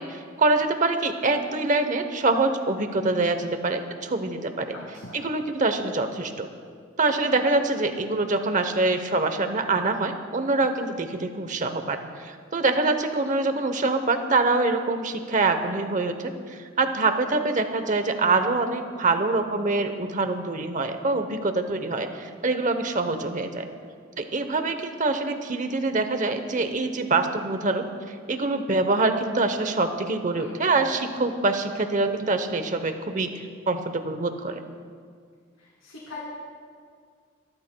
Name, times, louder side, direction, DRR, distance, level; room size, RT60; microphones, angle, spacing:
voice 1, 0.0-4.8 5.1-6.5 7.0-23.7 24.2-33.3 33.7-34.6, right 3 dB, 40° right, 8 dB, 0.8 m, -25 dB
voice 2, 4.7-5.2 30.3-30.5 35.6-36.2, left 2 dB, 85° left, -4 dB, 2.5 m, -41 dB
25.5 x 12.5 x 2.2 m, 2.1 s
head